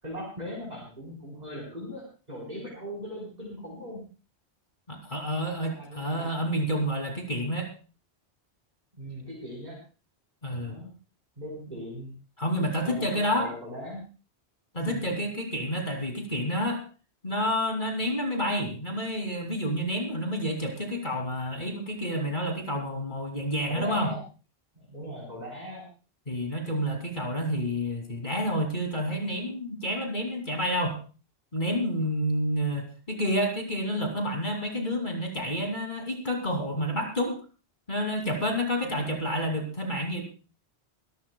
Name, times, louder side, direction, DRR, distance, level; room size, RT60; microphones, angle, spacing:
voice 1, 0.0-4.0 5.7-6.3 9.0-9.8 10.6-10.9 11.4-12.1 12.8-14.0 14.8-15.2 23.7-24.2 24.8-25.8 38.8-39.1, equal, 40° right, -5 dB, 4.5 m, -39 dB
voice 2, 4.9-7.7 10.4-10.8 12.4-13.5 14.7-16.8 17.2-24.1 26.3-31.0 31.5-37.4 37.9-40.2, equal, 45° left, 2 dB, 3.0 m, -29 dB
23.5 x 14.5 x 2.3 m, 0.35 s
omnidirectional pair, 1.1 m